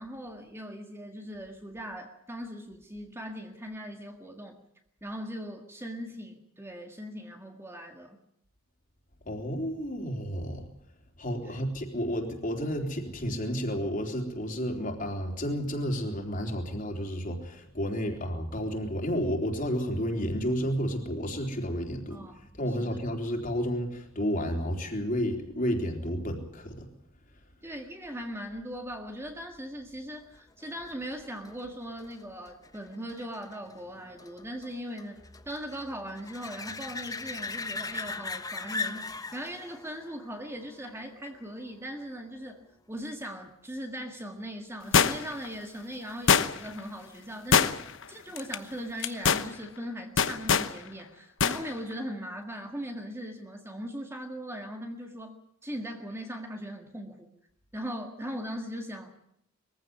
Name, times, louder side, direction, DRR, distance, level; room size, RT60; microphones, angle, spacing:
voice 1, 0.0-4.6 5.0-8.2 11.4-11.6 18.0-18.2 22.1-22.5 22.8-23.0 27.6-42.6 42.9-47.8 48.1-55.4 55.6-57.3 57.7-59.1, equal, 10° right, 4 dB, 1.8 m, -39 dB
voice 2, 9.3-10.7 11.2-22.2 22.5-26.9, equal, 40° left, 2 dB, 3.8 m, -31 dB
sound 1, 30.6-41.9 47.5-47.6, left 3 dB, 15° left, 1.0 m, -40 dB
sound 2, 44.9-45.4 46.3-46.8 47.5-48.0 48.4-48.6 49.0-49.5 50.2-50.7 51.4-51.6 51.9-52.0, left 6 dB, 60° left, 1.0 m, -23 dB
22.5 x 15.5 x 9.5 m, 0.74 s
head